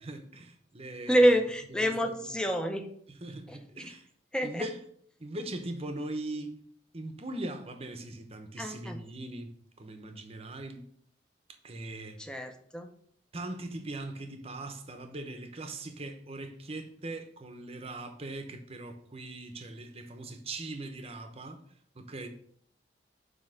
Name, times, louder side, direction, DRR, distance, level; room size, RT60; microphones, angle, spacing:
voice 1, 0.1-1.3 1.8-2.3 3.1-4.1 4.4-4.8 5.2-6.5 6.9-10.8 11.6-12.3 13.3-21.6 21.9-22.3, right 2 dB, 35° right, 0.8 m, -40 dB
voice 2, 1.1-2.9 3.5-3.6 4.3-4.7 8.6-9.0 12.2-12.9, equal, 5° left, 0.6 m, -27 dB
7.4 x 2.9 x 5.7 m
head